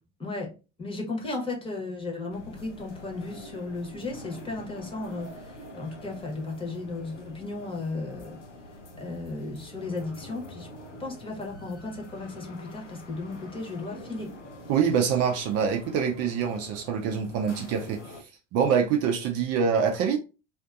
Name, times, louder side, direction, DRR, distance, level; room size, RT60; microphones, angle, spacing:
voice 1, 0.8-8.4 9.0-10.7 11.0-14.3, left 3 dB, 15° left, 1.0 m, -35 dB
sound 1, 2.3-18.2, left 1 dB, 85° left, 0.7 m, -45 dB
voice 2, 14.7-20.2, right 7 dB, 45° right, 0.6 m, -25 dB
2.5 x 2.5 x 2.4 m
figure-of-eight pair, 75°, 35 cm